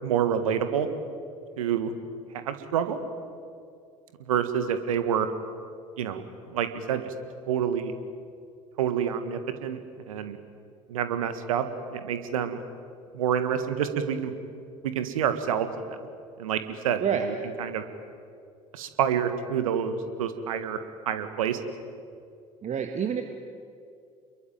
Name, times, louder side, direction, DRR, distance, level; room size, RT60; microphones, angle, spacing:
voice 1, 0.0-0.9 1.6-1.9 2.5-3.0 4.3-5.3 6.0-6.2 6.5-7.1 7.5-7.9 8.8-9.8 10.1-10.4 10.9-11.7 11.9-12.6 13.1-14.3 14.8-15.7 16.4-17.8 18.7-20.8 21.1-21.6, right 8 dB, 75° right, 10 dB, 1.7 m, -27 dB
voice 2, 22.6-23.2, right 8 dB, 40° right, 6 dB, 2.1 m, -27 dB
28.5 x 22.5 x 9.2 m, 2.3 s
figure-of-eight pair, 60°, 18 cm